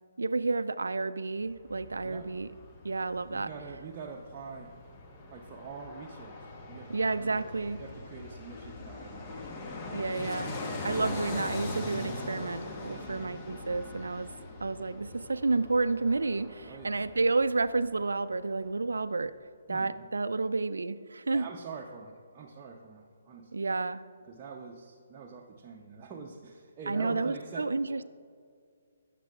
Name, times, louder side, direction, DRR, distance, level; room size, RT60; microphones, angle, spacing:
voice 1, 0.2-2.5 2.8-3.5 6.9-7.8 9.9-10.6 10.8-14.3 14.6-19.3 19.7-21.5 23.5-24.0 26.9-28.0, right 3 dB, 75° right, 14 dB, 0.4 m, -30 dB
Fixed-wing aircraft airplane, 1.4-18.4 18.7-18.8, left 2 dB, 25° left, 1.0 m, -42 dB
voice 2, 3.3-4.8 5.3-7.5 7.8-9.4 12.8-13.5 16.6-17.1 19.7-20.2 21.3-23.6 24.3-28.0, right 5 dB, 25° right, -2 dB, 0.7 m, -45 dB
16.5 x 6.7 x 2.4 m, 2.2 s
figure-of-eight pair, 140°, 0 cm